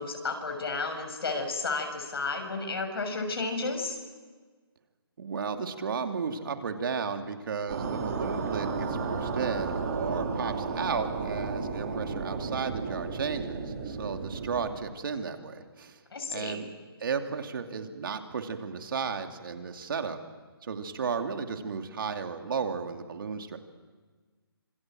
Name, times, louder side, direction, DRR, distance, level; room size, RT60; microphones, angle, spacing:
voice 1, 0.0-4.0 16.1-16.6, left 3 dB, 70° left, 5 dB, 7.0 m, -32 dB
voice 2, 5.2-16.0 16.3-16.7 17.0-20.2 20.6-23.6, right 5 dB, 60° right, 5 dB, 2.8 m, -34 dB
sound 1, 7.7-14.7, right 4 dB, 40° right, 4.9 m, -33 dB
26.5 x 25.5 x 7.7 m, 1.4 s
hypercardioid pair, 165°, 13 cm